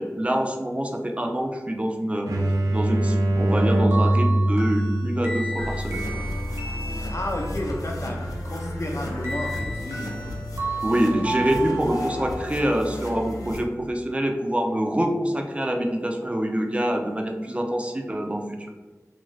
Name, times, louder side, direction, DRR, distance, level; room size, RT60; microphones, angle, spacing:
voice 1, 0.0-2.3 2.7-6.0 10.8-18.4, equal, 20° right, 2 dB, 0.4 m, -25 dB
sound 1, 2.3-7.8, right 1 dB, 80° right, 0.4 m, -24 dB
sound 2, 3.9-7.6 9.2-13.0, right 2 dB, 50° right, 0.8 m, -33 dB
sound 3, 5.6-13.6, left 1 dB, 90° left, 0.5 m, -33 dB
voice 2, 7.1-10.1, left 1 dB, 55° left, 0 dB, 0.7 m, -31 dB
3.0 x 2.4 x 3.1 m, 1.2 s
wide cardioid pair, 45°, 6 cm